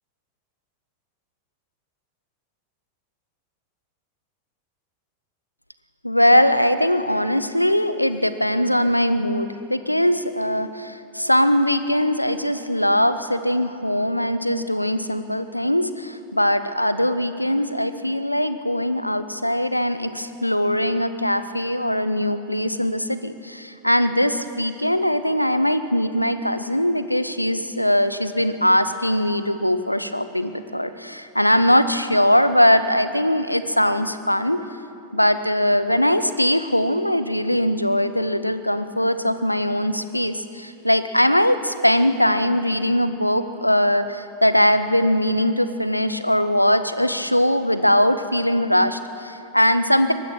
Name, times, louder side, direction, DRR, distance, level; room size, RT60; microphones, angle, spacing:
voice 1, 6.0-34.6 35.1-50.1, equal, 90° left, 12 dB, 0.8 m, -21 dB
23.5 x 19.0 x 6.2 m, 2.7 s
figure-of-eight pair, 90°, 0 cm